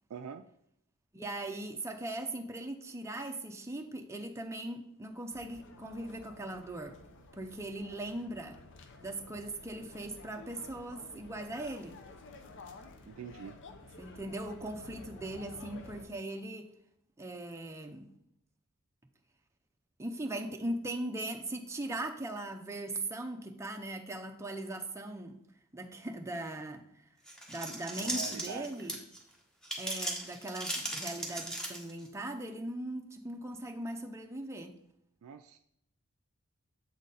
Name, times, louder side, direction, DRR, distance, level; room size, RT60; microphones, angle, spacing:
voice 1, 0.1-0.4 13.1-13.6 28.0-28.9 35.2-35.6, right 6 dB, 90° right, 5 dB, 0.4 m, -44 dB
voice 2, 1.1-7.0 7.3-8.6 9.0-12.0 14.0-16.7 17.2-18.1 20.0-25.4 25.7-27.0 27.5-28.9 29.8-34.7, right 1 dB, 15° right, 3 dB, 0.5 m, -39 dB
sound 1, 5.3-16.0, left 3 dB, 60° left, 0.6 m, -52 dB
sound 2, 27.3-29.2 29.6-32.1, right 1 dB, 5° left, 1.0 m, -37 dB
7.2 x 4.0 x 3.9 m, 0.75 s
head